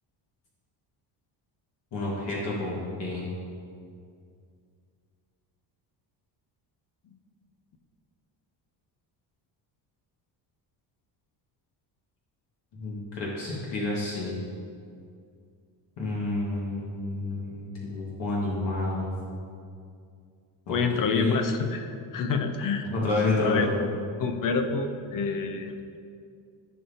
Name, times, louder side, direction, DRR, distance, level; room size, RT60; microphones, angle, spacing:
voice 1, 1.9-3.3 12.7-14.4 16.0-19.1 20.7-20.8 21.0-21.5 22.9-23.8, left 2 dB, 60° left, -5 dB, 2.0 m, -29 dB
voice 2, 20.7-22.9 23.4-23.7 24.2-25.8, left 5 dB, 45° left, 7 dB, 0.7 m, -28 dB
14.0 x 5.6 x 2.9 m, 2.3 s
cardioid pair, 130°, 46 cm